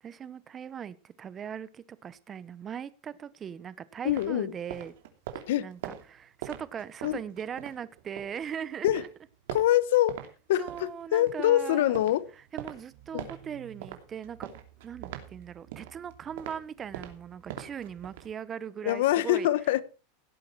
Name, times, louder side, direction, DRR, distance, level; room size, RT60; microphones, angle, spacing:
voice 1, 0.0-4.9 5.5-9.1 10.6-12.0 12.5-14.5 14.8-19.5, right 8 dB, 25° right, 1.0 m, -39 dB
voice 2, 4.0-4.5 5.5-5.7 7.0-7.2 8.8-9.0 9.5-10.2 10.5-12.2 13.1-13.3 18.8-19.8, left 13 dB, 75° left, 1.1 m, -24 dB
sound 1, 4.1-8.5 8.8-10.3 10.6-18.3, right 11 dB, 75° right, 2.7 m, -43 dB
17.0 x 8.4 x 4.7 m
supercardioid pair, 130°, 0 cm